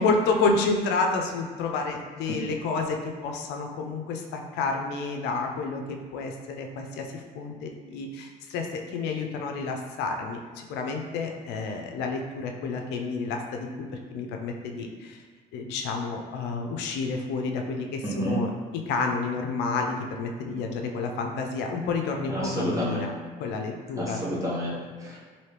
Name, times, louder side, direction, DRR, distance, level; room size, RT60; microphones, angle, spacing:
voice 1, 0.0-15.2 15.5-18.5 18.9-23.1 23.4-24.2, left 4 dB, 85° left, 2 dB, 0.4 m, -30 dB
voice 2, 18.0-18.4 22.3-23.1 24.0-25.2, equal, 20° right, -6 dB, 0.9 m, -29 dB
2.9 x 2.7 x 3.2 m, 1.5 s
cardioid pair, 110°, 17 cm